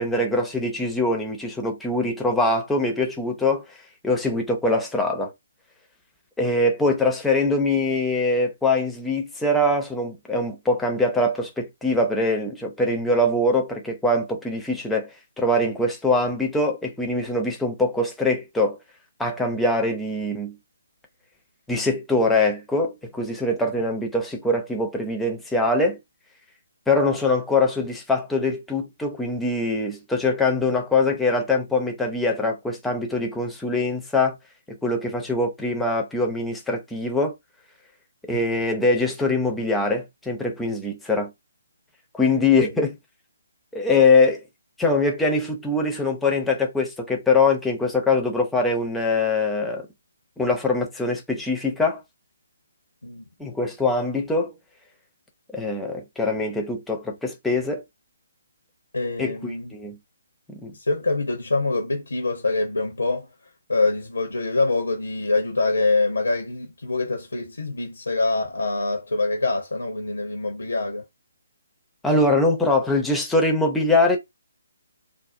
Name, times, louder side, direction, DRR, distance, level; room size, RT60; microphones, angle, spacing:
voice 1, 0.0-3.6 4.0-5.3 6.4-18.8 19.2-20.5 21.7-26.0 26.9-34.4 34.7-37.3 38.3-41.3 42.1-43.0 43.7-44.4 44.8-49.9 50.4-52.0 53.4-54.5 55.5-57.8 59.2-60.0 60.5-60.7 72.0-74.2, left 2 dB, 5° left, 0.5 m, -23 dB
voice 2, 58.9-59.7 60.7-63.3 63.7-71.0, left 3 dB, 80° left, 0.7 m, -25 dB
2.5 x 2.0 x 2.5 m
figure-of-eight pair, 140°, 0 cm